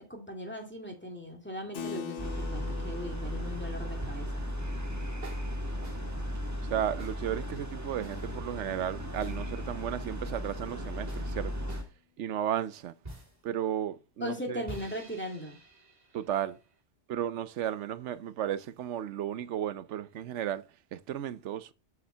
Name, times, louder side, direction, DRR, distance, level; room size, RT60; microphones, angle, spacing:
voice 1, 0.1-4.4 14.2-15.6, equal, 10° left, 2.4 m, -38 dB
Keyboard (musical), 1.7-7.8, left 6 dB, 85° left, 1.4 m, -45 dB
sound 1, 2.2-11.8, equal, 15° right, 1.4 m, -36 dB
sound 2, 4.0-4.5 5.2-5.5 5.8-6.0 7.0-7.2 8.0-8.4 9.2-9.4 11.1-11.3 11.7-11.9 13.0-13.4 14.7-16.8, right 2 dB, 35° right, 3.0 m, -48 dB
voice 2, 6.7-11.7 12.2-12.9 13.4-14.6 16.1-16.6 17.1-20.6 20.9-21.7, right 10 dB, 85° right, 1.0 m, -34 dB
8.5 x 7.2 x 3.3 m
omnidirectional pair, 1.2 m